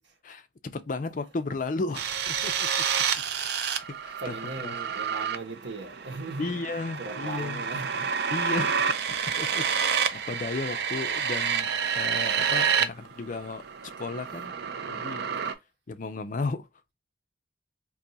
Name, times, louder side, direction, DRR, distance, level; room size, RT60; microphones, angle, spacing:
voice 1, 0.2-2.8 4.0-4.7 6.4-7.6 8.3-8.8 9.4-13.6 14.0-14.5 14.9-15.3 15.9-16.7, left 3 dB, 45° left, 0.4 m, -34 dB
sound 1, 1.9-12.8 13.1-15.5, right 7 dB, 65° right, 0.4 m, -29 dB
voice 2, 4.1-6.6 7.0-8.2, right 3 dB, 85° right, 1.1 m, -38 dB
2.7 x 2.4 x 3.9 m
head